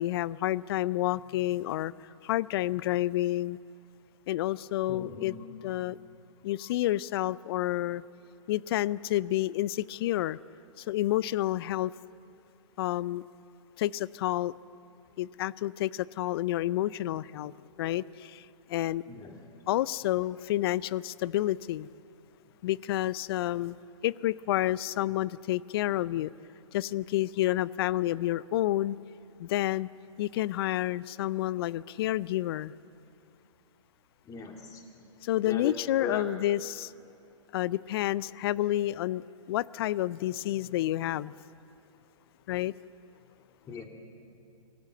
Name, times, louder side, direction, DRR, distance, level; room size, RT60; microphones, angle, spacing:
voice 1, 0.0-1.9 2.2-3.6 4.3-5.4 5.6-6.0 6.4-8.0 8.5-10.4 10.8-11.9 12.8-13.2 13.8-14.5 15.2-17.5 17.8-19.0 19.7-21.9 22.6-23.8 24.0-26.3 26.7-29.0 29.4-29.9 30.2-32.7 35.2-36.9 37.5-41.4 42.5-42.7, left 14 dB, 45° left, 21 dB, 0.5 m, -29 dB
voice 2, 4.9-5.4 19.1-19.3 34.3-34.8 35.4-36.2 43.7-43.8, left 5 dB, 20° left, 2 dB, 2.9 m, -38 dB
25.5 x 18.5 x 7.8 m, 2.7 s
hypercardioid pair, 125°, 17 cm